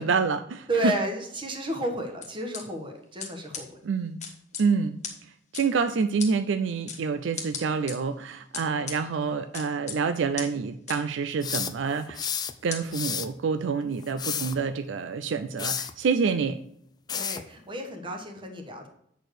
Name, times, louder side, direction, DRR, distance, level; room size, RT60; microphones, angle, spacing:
voice 1, 0.0-0.9 3.8-4.2 4.6-12.2 12.6-16.6, right 5 dB, 70° right, 9 dB, 0.4 m, -27 dB
voice 2, 0.7-3.7 17.1-18.9, right 1 dB, 25° right, 3 dB, 1.3 m, -32 dB
sound 1, 2.2-2.6 3.2-3.3 3.5-3.6 4.2-4.6 5.0-5.1 5.5-5.6 6.2-6.3 6.9-7.0 7.4-7.9 8.5-9.0 9.5-10.0 10.4-10.5 10.9-11.0 11.5-11.6 12.2-12.3 12.7-12.8, left 7 dB, 40° left, 1.3 m, -35 dB
sound 2, 11.4-12.5 12.9-13.3 14.0-14.6 15.6-15.9 17.1-17.5, left 8 dB, 20° left, 0.4 m, -31 dB
7.9 x 4.5 x 6.5 m, 0.73 s
head